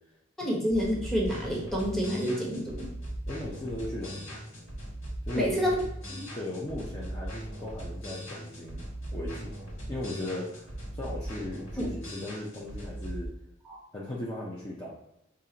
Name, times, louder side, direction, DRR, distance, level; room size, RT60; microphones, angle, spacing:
voice 1, 0.4-2.9 5.4-5.8 6.2-6.3 11.8-11.9 13.7-13.8, equal, ahead, -4 dB, 1.0 m, -28 dB
sound 1, 0.7-13.3, right 1 dB, 85° left, 1.4 m, -39 dB
voice 2, 3.3-4.4 5.2-5.7 6.3-9.5 9.9-13.3 13.9-14.9, left 1 dB, 20° left, -6 dB, 0.6 m, -37 dB
5.3 x 2.5 x 2.8 m, 0.83 s
head